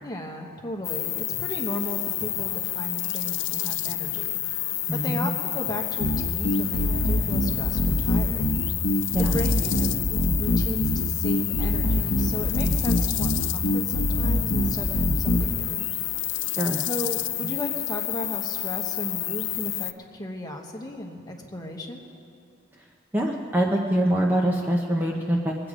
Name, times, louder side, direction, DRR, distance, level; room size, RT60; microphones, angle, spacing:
voice 1, 0.0-4.4 4.9-8.5 9.2-15.9 16.8-22.1, left 1 dB, 20° left, 1 dB, 1.1 m, -35 dB
sound 1, 0.8-19.9, left 16 dB, 65° left, 0.4 m, -29 dB
voice 2, 4.9-5.3 9.1-9.4 16.6-16.8 17.4-17.5 23.1-25.6, right 1 dB, 10° right, 0 dB, 0.6 m, -24 dB
sound 2, 6.0-15.5, equal, 85° left, 0.9 m, -24 dB
21.0 x 8.7 x 5.0 m, 2.5 s
head